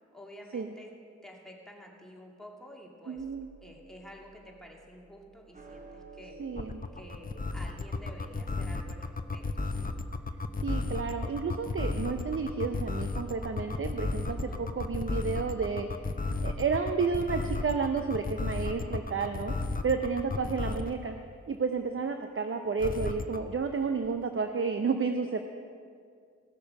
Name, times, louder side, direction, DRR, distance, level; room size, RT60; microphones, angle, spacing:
voice 1, 0.1-0.9 1.2-3.3 3.6-6.4 6.9-9.9 14.3-14.7, equal, ahead, -1 dB, 2.3 m, -50 dB
voice 2, 3.1-3.5 6.4-6.8 10.6-15.9 16.4-19.5 19.8-21.2 21.5-25.4, right 5 dB, 45° right, 6 dB, 0.7 m, -31 dB
sound 1, 3.2-8.9, right 3 dB, 25° right, 1.2 m, -53 dB
sound 2, 6.6-21.0 22.8-23.4, left 3 dB, 30° left, 0.8 m, -33 dB
16.5 x 6.7 x 5.4 m, 2.2 s
cardioid pair, 45°, 29 cm